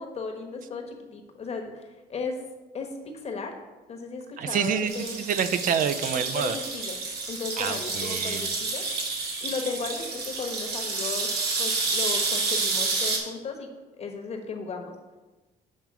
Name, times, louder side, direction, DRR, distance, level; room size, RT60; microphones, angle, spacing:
voice 1, 0.0-2.4 2.7-3.6 3.9-5.2 6.1-7.0 7.3-13.7 14.0-15.2, left 4 dB, 40° left, 3 dB, 1.1 m, -36 dB
voice 2, 4.4-6.6 7.6-8.4, right 8 dB, 55° right, 10 dB, 0.4 m, -27 dB
sound 1, 4.9-13.2, right 3 dB, 70° right, 1.6 m, -29 dB
7.2 x 3.5 x 5.9 m, 1.2 s
cardioid pair, 110°, 17 cm